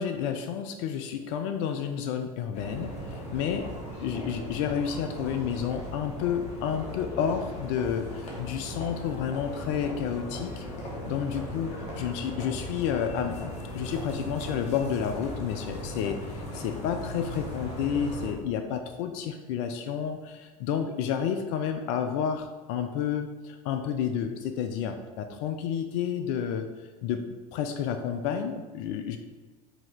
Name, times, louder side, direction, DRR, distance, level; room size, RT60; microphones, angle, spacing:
voice 1, 0.0-3.7 4.0-10.7 11.1-26.7 27.0-29.2, left 8 dB, 50° left, 7 dB, 0.4 m, -30 dB
sound 1, 2.5-18.3, equal, 35° left, 1.2 m, -38 dB
4.7 x 2.8 x 3.6 m, 1.3 s
figure-of-eight pair, 75°, 20 cm